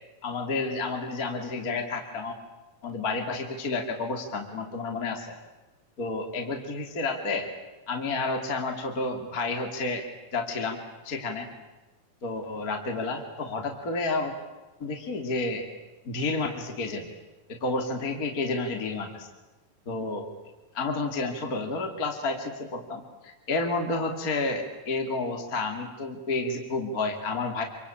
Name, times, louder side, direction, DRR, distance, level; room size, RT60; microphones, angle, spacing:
voice 1, 0.2-2.4 2.8-5.3 6.0-7.5 7.9-10.1 10.3-11.5 12.2-14.3 14.8-15.7 16.0-17.1 17.5-19.3 19.9-20.3 20.7-27.6, left 3 dB, 30° left, 4 dB, 2.9 m, -30 dB
27.5 x 25.0 x 8.7 m, 1.2 s
omnidirectional pair, 3.7 m